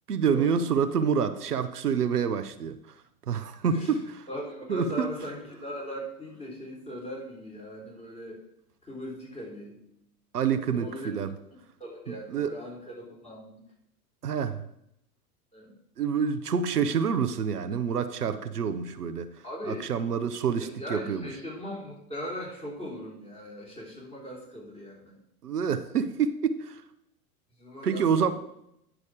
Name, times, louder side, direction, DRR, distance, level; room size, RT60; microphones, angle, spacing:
voice 1, 0.1-2.8 3.3-4.2 4.7-5.1 10.3-11.3 12.3-12.5 14.2-14.6 16.0-19.3 19.7-21.2 25.4-26.8 27.8-28.3, right 6 dB, 85° right, 10 dB, 0.8 m, -27 dB
voice 2, 4.3-8.4 8.8-9.8 10.5-11.1 11.8-13.6 15.5-15.7 19.4-19.9 20.3-20.4 20.7-25.2 27.6-28.3, equal, 15° left, -3 dB, 3.9 m, -39 dB
9.9 x 6.3 x 5.0 m, 0.79 s
figure-of-eight pair, 95°, 45 cm